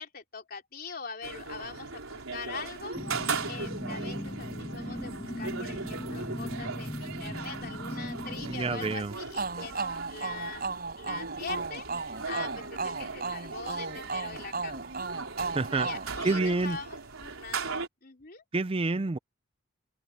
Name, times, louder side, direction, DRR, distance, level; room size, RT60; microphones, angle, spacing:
voice 1, 0.0-3.0 3.4-10.7 11.0-14.8 15.7-18.4, left 5 dB, 45° left, 3.6 m, -43 dB
sound 1, 1.2-17.9, right 4 dB, 85° right, 4.1 m, -38 dB
sound 2, 2.9-9.0, left 1 dB, 20° left, 0.9 m, -38 dB
voice 2, 8.4-9.1 15.5-15.9 16.2-16.8 18.5-19.2, right 3 dB, 25° right, 0.4 m, -28 dB
sound 3, 9.3-16.9, right 4 dB, 45° right, 7.2 m, -35 dB
open air
head